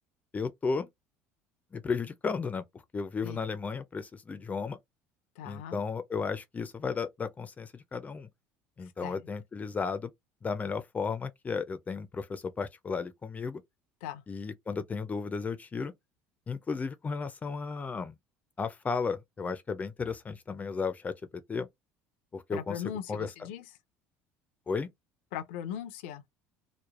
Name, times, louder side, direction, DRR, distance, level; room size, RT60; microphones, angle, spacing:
voice 1, 0.3-0.9 1.7-2.6 2.9-4.8 5.4-8.3 8.8-10.1 10.4-13.6 14.3-15.9 16.5-18.1 18.6-21.1 21.5-21.7 22.3-22.8 23.1-23.3 24.7-24.9, left 5 dB, 25° left, 0.4 m, -34 dB
voice 2, 5.4-5.8 8.8-9.3 14.0-14.2 22.5-23.7 25.3-26.2, left 9 dB, 90° left, 0.5 m, -39 dB
3.1 x 2.1 x 2.4 m
supercardioid pair, 95°, 6 cm